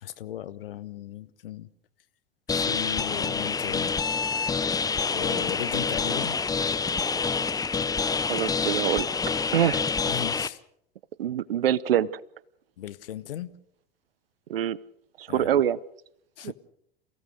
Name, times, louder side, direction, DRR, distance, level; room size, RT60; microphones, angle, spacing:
voice 1, 0.0-1.7 2.5-3.9 5.1-6.4 10.1-10.6 12.8-13.5 15.3-15.5 16.4-16.5, left 12 dB, 70° left, 1.2 m, -36 dB
sound 1, 2.5-10.5, left 5 dB, 10° left, 0.7 m, -27 dB
voice 2, 8.3-9.1 9.5-9.8 11.2-12.2 14.5-14.8 15.2-15.8 16.4-16.5, right 10 dB, 75° right, 0.9 m, -25 dB
28.0 x 16.5 x 6.5 m
figure-of-eight pair, 85°, 30 cm